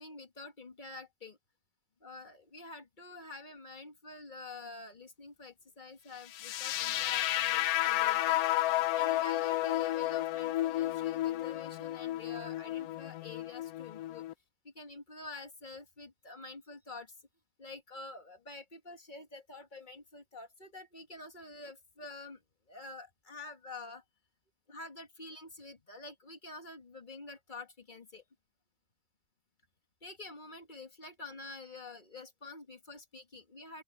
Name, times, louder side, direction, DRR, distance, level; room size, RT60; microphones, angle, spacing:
voice 1, 0.0-1.4 2.0-8.4 8.9-14.3 14.6-17.2 17.6-22.4 22.7-24.0 24.7-28.2 30.0-33.8, left 3 dB, 30° left, 1.8 m, -48 dB
sound 1, 6.3-14.3, left 15 dB, 70° left, 0.9 m, -32 dB
open air
omnidirectional pair, 1.8 m